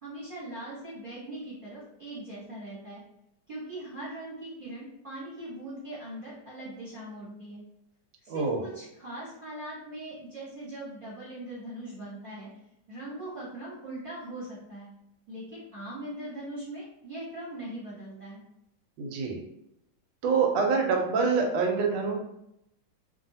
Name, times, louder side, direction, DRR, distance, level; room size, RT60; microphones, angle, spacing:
voice 1, 0.0-3.0 3.5-7.6 8.2-12.5 12.9-14.9 15.3-18.4, right 1 dB, 35° right, -10 dB, 1.1 m, -40 dB
voice 2, 8.3-8.6 19.0-19.4 20.2-22.1, right 5 dB, 85° right, 2 dB, 1.3 m, -26 dB
2.7 x 2.6 x 2.7 m, 0.81 s
omnidirectional pair, 2.0 m